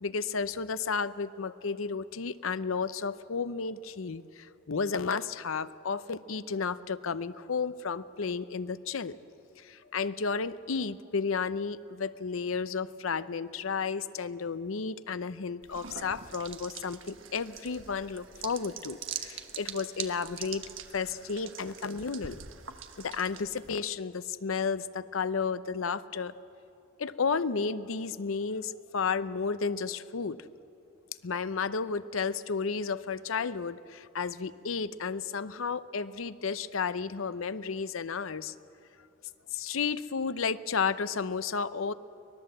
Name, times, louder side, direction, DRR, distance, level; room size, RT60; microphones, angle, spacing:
voice 1, 0.0-9.2 9.6-20.6 20.9-22.4 23.0-26.4 27.0-30.4 31.2-38.5 39.5-41.9, left 5 dB, 85° left, 14 dB, 0.7 m, -32 dB
sound 1, 15.6-23.7, right 8 dB, 70° right, 1.3 m, -43 dB
24.0 x 19.5 x 7.8 m, 2.7 s
head